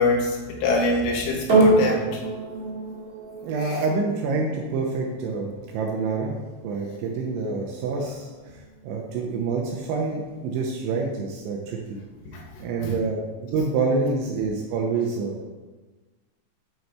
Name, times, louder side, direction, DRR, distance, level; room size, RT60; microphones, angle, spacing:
voice 1, 0.0-2.2 3.6-3.8 12.3-12.9, left 3 dB, 85° left, -2 dB, 3.8 m, -25 dB
sound 1, 1.5-10.0 10.8-10.9, right 2 dB, 50° right, 1.0 m, -27 dB
voice 2, 3.4-6.3 6.6-8.6 8.8-12.0 12.6-15.5, right 4 dB, 85° right, -1 dB, 2.9 m, -27 dB
7.8 x 4.1 x 4.6 m, 1.3 s
omnidirectional pair, 5.5 m